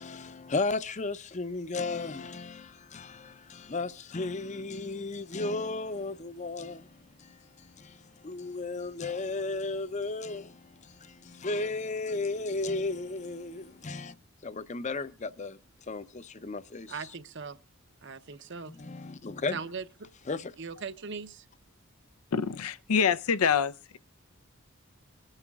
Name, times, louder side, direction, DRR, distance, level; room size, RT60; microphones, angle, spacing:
voice 1, 0.0-14.2 14.4-15.6 15.9-17.1 18.7-19.7 20.3-20.5, left 3 dB, 35° left, 0.6 m, -35 dB
voice 2, 16.9-17.6 18.0-18.7 19.5-19.8 20.6-21.4, right 5 dB, 55° right, 0.8 m, -39 dB
voice 3, 22.3-24.0, left 6 dB, 90° left, 0.6 m, -26 dB
24.5 x 9.8 x 2.3 m
head